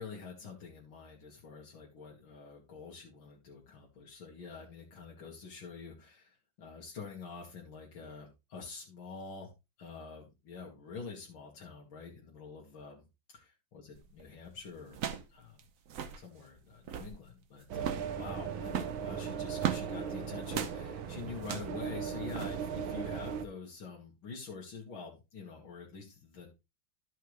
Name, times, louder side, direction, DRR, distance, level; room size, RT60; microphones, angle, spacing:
voice 1, 0.0-9.5 9.8-13.0 13.3-15.0 15.3-15.6 16.1-26.5, left 5 dB, 85° left, -3 dB, 2.5 m, -47 dB
sound 1, 14.0-14.2 14.9-15.3 15.6-15.7 15.9-16.2 16.7-17.2 17.8-18.1 18.7-19.9 20.5-20.8 21.4-21.8 22.3-22.5, right 8 dB, 55° right, 1.0 m, -36 dB
sound 2, 17.7-23.4, right 7 dB, 90° right, 1.8 m, -38 dB
12.5 x 5.7 x 3.1 m, 0.25 s
omnidirectional pair, 2.1 m